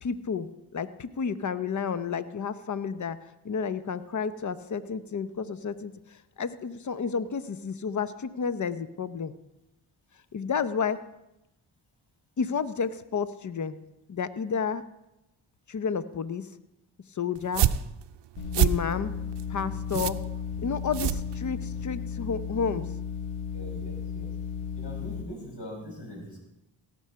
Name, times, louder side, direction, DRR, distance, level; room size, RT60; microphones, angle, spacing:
voice 1, 0.0-3.2 3.4-9.3 10.3-11.0 12.4-13.8 14.1-14.8 15.7-16.5 17.1-17.7 18.6-19.1 19.5-20.2 20.6-22.9, left 6 dB, 40° left, 14 dB, 0.9 m, -31 dB
sound 1, 17.4-21.9, right 10 dB, 60° right, 0.6 m, -28 dB
sound 2, 18.4-25.2, left 6 dB, 85° left, 1.6 m, -35 dB
voice 2, 23.5-24.3 24.7-26.4, equal, 55° left, 0 dB, 5.0 m, -42 dB
17.0 x 6.3 x 5.7 m, 0.91 s
supercardioid pair, 50°, 48 cm